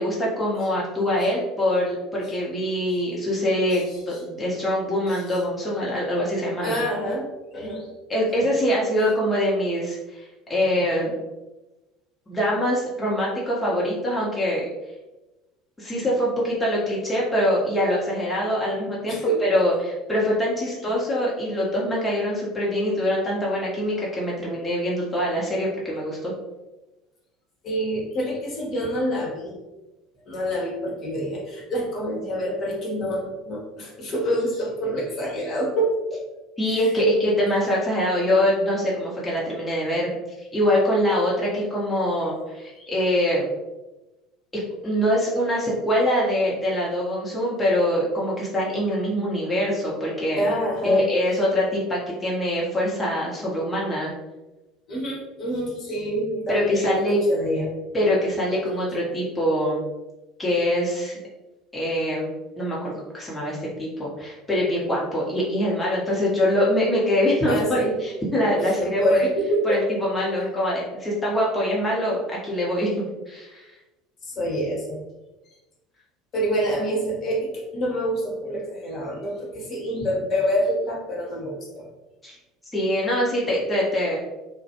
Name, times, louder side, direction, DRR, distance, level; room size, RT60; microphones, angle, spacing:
voice 1, 0.0-6.8 8.1-11.1 12.3-14.7 15.8-26.3 36.6-40.1 40.4-43.4 44.8-50.4 50.8-54.1 56.5-57.2 57.9-59.8 60.4-61.2 61.7-62.3 62.6-69.3 69.6-73.8 82.2-82.4 82.7-84.2, equal, 15° left, -5 dB, 0.8 m, -24 dB
voice 2, 3.7-4.2 5.1-5.4 6.6-7.9 19.1-19.4 27.6-29.5 30.3-36.2 36.7-37.1 42.7-42.9 50.3-51.1 54.9-57.7 67.5-67.9 68.6-69.8 74.2-75.0 76.3-81.8, equal, 45° left, -3 dB, 0.9 m, -26 dB
2.3 x 2.1 x 2.8 m, 1.1 s
hypercardioid pair, 70°, 0 cm